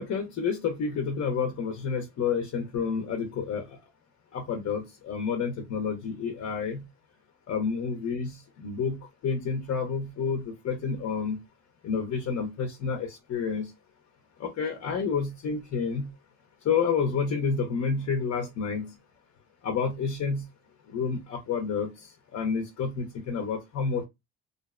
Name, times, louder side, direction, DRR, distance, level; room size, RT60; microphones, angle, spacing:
voice 1, 0.0-3.6 4.3-6.8 7.5-11.4 11.8-13.7 14.4-16.1 16.6-18.9 19.6-20.4 20.9-21.9 22.3-24.1, left 5 dB, 60° left, 0.6 m, -29 dB
2.5 x 2.1 x 2.3 m
cardioid pair, 90°, 30 cm